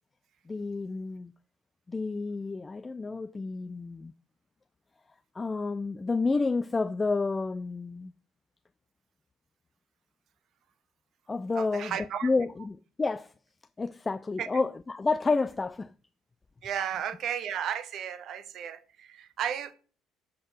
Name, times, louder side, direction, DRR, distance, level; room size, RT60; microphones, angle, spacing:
voice 1, 0.5-1.3 1.9-4.1 5.4-8.1 11.3-12.0 12.2-13.3 13.8-15.9, left 3 dB, 20° left, 0.3 m, -30 dB
voice 2, 11.5-12.3 14.4-14.5 16.6-19.7, right 9 dB, 60° right, 0.9 m, -34 dB
7.8 x 3.9 x 6.4 m
cardioid pair, 95°, 0 cm